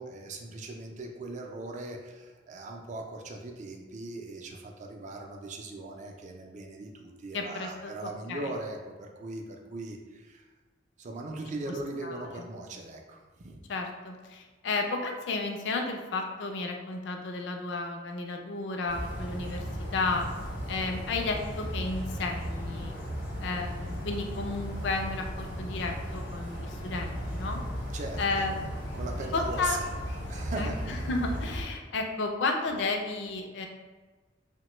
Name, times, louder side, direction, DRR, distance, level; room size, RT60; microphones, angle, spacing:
voice 1, 0.0-10.5 11.0-13.6 27.9-28.4 28.9-29.9 30.3-30.8, right 2 dB, 40° right, 2 dB, 0.4 m, -39 dB
voice 2, 7.3-8.5 12.0-12.3 13.7-19.6 19.9-20.3 20.7-22.9 23.4-27.6 28.2-28.7 29.3-29.8 30.6-33.7, left 3 dB, 70° left, 3 dB, 0.4 m, -32 dB
sound 1, 18.9-31.6, equal, 85° left, 0.9 m, -36 dB
3.0 x 2.1 x 2.9 m, 1.3 s
head